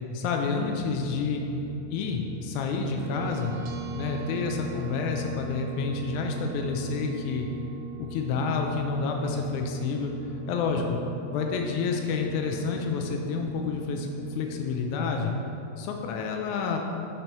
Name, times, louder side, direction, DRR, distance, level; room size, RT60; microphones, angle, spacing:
voice 1, 0.1-1.4 1.9-3.5 3.9-7.5 8.0-10.1 10.5-11.0 11.3-15.3 15.8-16.8, left 4 dB, 80° left, 2 dB, 1.9 m, -29 dB
sound 1, 0.6-14.9, right 7 dB, 90° right, 1.4 m, -42 dB
7.6 x 6.8 x 3.0 m, 2.8 s
omnidirectional pair, 3.5 m